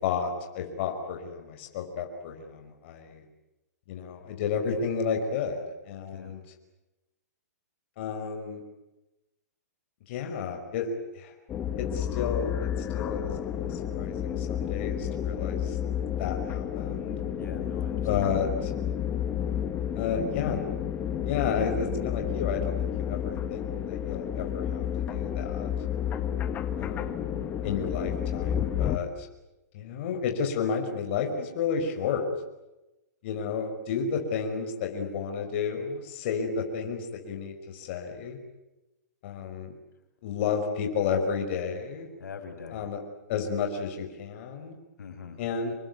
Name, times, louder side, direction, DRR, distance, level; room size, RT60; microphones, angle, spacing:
voice 1, 0.0-3.2 3.9-6.4 8.0-8.6 10.1-11.3 11.8-15.8 16.2-17.2 18.0-18.7 19.9-20.6 21.2-24.8 25.1-25.7 26.8-27.4 27.6-29.3 29.7-32.3 33.2-38.4 39.2-39.7 40.2-42.1 42.7-43.0 43.3-44.8 45.4-45.8, left 6 dB, 45° left, 4 dB, 5.3 m, -32 dB
sound 1, 11.5-29.0, left 9 dB, 20° left, 1.7 m, -31 dB
voice 2, 17.4-18.5 42.2-42.8 45.0-45.4, left 6 dB, 90° left, 6 dB, 6.1 m, -43 dB
27.5 x 21.5 x 9.6 m, 0.98 s
hypercardioid pair, 155°, 9 cm